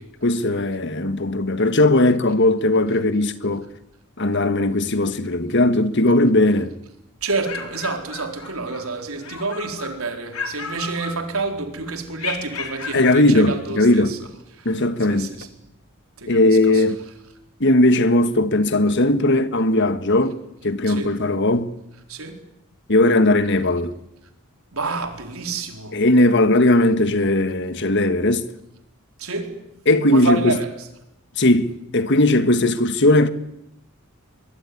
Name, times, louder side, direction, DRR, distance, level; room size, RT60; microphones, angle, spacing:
voice 1, 0.2-3.6 4.2-6.7 12.9-14.1 14.7-15.3 16.3-17.0 17.6-20.4 20.6-21.7 22.9-23.9 25.9-28.5 29.9-30.6 31.4-33.3, left 2 dB, 55° left, 1.6 m, -18 dB
sound 1, 7.2-8.9 9.2-10.0 10.3-11.6 12.2-13.3, left 5 dB, 85° left, 4.9 m, -33 dB
voice 2, 7.2-14.2 15.1-15.5 16.2-16.8 20.9-21.1 22.1-22.4 24.7-26.0 29.2-29.6 30.1-30.7, right 3 dB, 70° right, 4.3 m, -28 dB
23.5 x 23.5 x 9.8 m
head